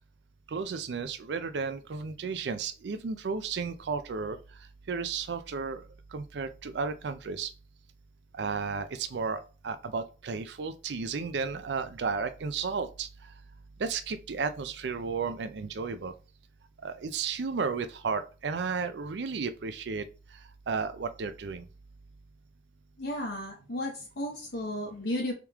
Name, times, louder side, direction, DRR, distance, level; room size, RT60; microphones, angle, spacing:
voice 1, 0.5-4.4 4.9-5.8 6.1-7.5 8.4-13.1 13.8-16.1 16.8-20.0 20.7-21.6, right 5 dB, 80° right, 0.5 m, -33 dB
voice 2, 23.0-25.3, left 1 dB, 85° left, 0.8 m, -34 dB
3.7 x 3.0 x 3.5 m
head